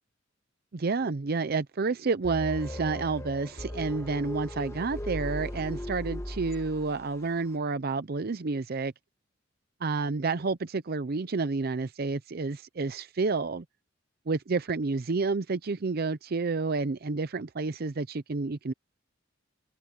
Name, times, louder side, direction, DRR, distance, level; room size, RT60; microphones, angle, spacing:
voice 1, 0.7-8.9 9.8-13.6 14.3-18.7, right 4 dB, 55° right, 0.6 m, -30 dB
sound 1, 2.2-7.2, left 1 dB, 15° left, 1.5 m, -38 dB
head